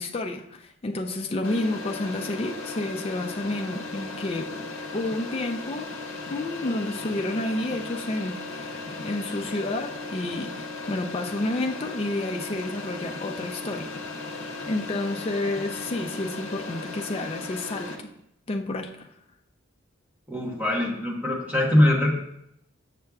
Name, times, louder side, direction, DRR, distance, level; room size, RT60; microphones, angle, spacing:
voice 1, 0.0-4.5 4.9-5.9 6.3-18.1 18.5-19.1, left 2 dB, 25° left, 4 dB, 0.4 m, -30 dB
sound 1, 1.4-18.0, left 3 dB, 70° left, 0.7 m, -36 dB
voice 2, 20.3-22.1, left 1 dB, 5° right, -3 dB, 1.0 m, -22 dB
6.6 x 6.4 x 2.3 m, 0.77 s
head